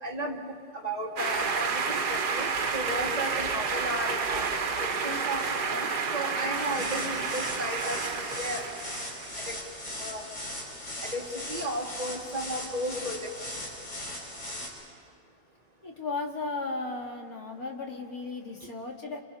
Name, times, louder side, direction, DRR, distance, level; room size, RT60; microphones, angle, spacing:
voice 1, 0.0-0.4 0.7-4.5 4.8-8.6 9.5-9.6 10.0-10.2 11.0-13.3, right 1 dB, 20° right, 0 dB, 2.3 m, -34 dB
sound 1, 1.2-9.5, right 5 dB, 65° right, 1.9 m, -30 dB
sound 2, 6.5-14.7, left 1 dB, 80° left, 5.0 m, -39 dB
voice 2, 15.8-19.2, left 3 dB, 50° left, 0 dB, 2.9 m, -35 dB
29.5 x 28.0 x 5.6 m, 2.2 s
omnidirectional pair, 2.0 m